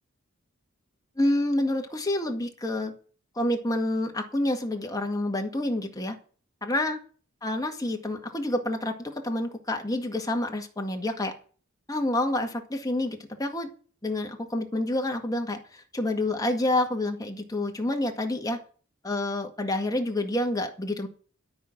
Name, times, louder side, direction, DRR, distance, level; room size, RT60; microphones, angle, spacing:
voice 1, 1.2-2.9 3.4-6.2 6.6-7.0 7.4-11.3 11.9-13.7 14.0-18.6 19.0-21.1, left 1 dB, 15° left, 3 dB, 1.8 m, -28 dB
12.5 x 6.2 x 8.7 m, 0.41 s
head